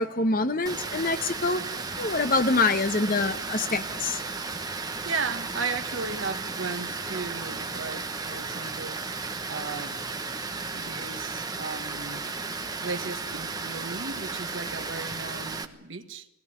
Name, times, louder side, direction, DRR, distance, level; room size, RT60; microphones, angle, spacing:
voice 1, 0.0-1.6 2.0-4.2, left 3 dB, 40° left, 1.1 m, -25 dB
Water, 0.7-15.6, right 4 dB, 15° right, 1.1 m, -34 dB
voice 2, 4.8-9.0 9.5-10.0 10.7-12.3 12.8-16.3, right 4 dB, 60° right, 1.7 m, -35 dB
20.5 x 17.5 x 9.7 m
head